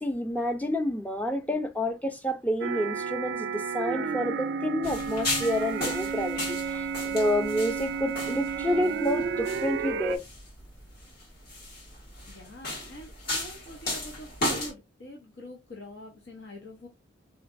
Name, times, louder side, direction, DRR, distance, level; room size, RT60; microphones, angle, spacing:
voice 1, 0.0-10.2, left 1 dB, 10° left, 0.5 m, -29 dB
sound 1, 2.6-10.2, right 5 dB, 55° right, 0.3 m, -32 dB
sound 2, 4.8-14.7, left 1 dB, 50° left, 1.9 m, -35 dB
voice 2, 12.3-16.9, left 1 dB, 70° left, 0.9 m, -45 dB
3.8 x 3.3 x 2.5 m
head